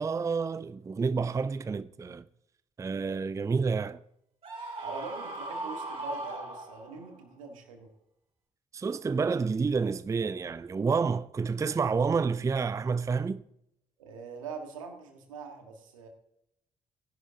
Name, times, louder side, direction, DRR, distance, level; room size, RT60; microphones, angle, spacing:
voice 1, 0.0-2.2 2.8-4.0 8.7-13.4, right 5 dB, 20° right, 0.4 m, -29 dB
Screaming, 4.4-7.1, right 2 dB, 35° right, 3.7 m, -38 dB
voice 2, 4.8-7.9 14.0-16.1, right 5 dB, 80° right, 1.7 m, -43 dB
16.5 x 11.0 x 2.8 m
figure-of-eight pair, 45°, 17 cm